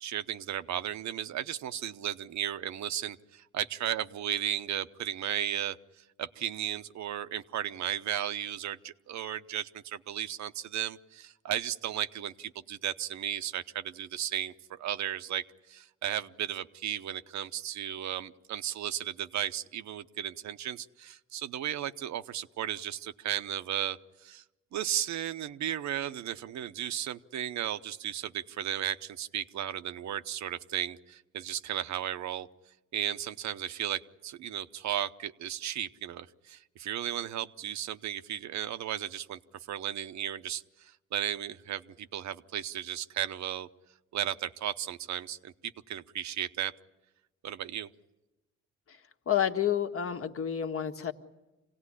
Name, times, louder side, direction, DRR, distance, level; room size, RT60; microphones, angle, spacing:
voice 1, 0.0-5.8 6.2-15.4 15.7-24.4 24.7-32.5 32.9-39.4 39.7-43.7 44.1-46.7 47.4-47.9, right 11 dB, 65° right, 11 dB, 0.8 m, -35 dB
voice 2, 49.3-51.1, left 9 dB, 45° left, 6 dB, 1.6 m, -29 dB
26.0 x 17.5 x 9.9 m, 1.0 s
cardioid pair, 90°, 30 cm